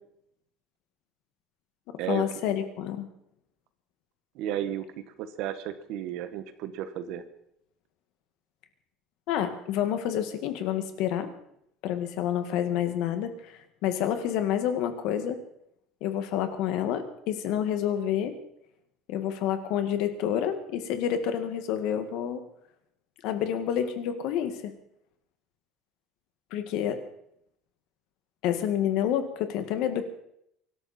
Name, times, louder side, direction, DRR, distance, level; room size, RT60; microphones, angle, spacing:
voice 1, 2.1-3.1 9.3-11.3 11.8-15.4 16.0-18.4 19.1-22.4 23.2-24.7 26.5-27.0 28.4-30.1, left 10 dB, 55° left, 8 dB, 1.9 m, -28 dB
voice 2, 4.3-7.2, right 11 dB, 50° right, 11 dB, 1.4 m, -33 dB
24.5 x 12.5 x 4.4 m, 0.75 s
cardioid pair, 180°, 0 cm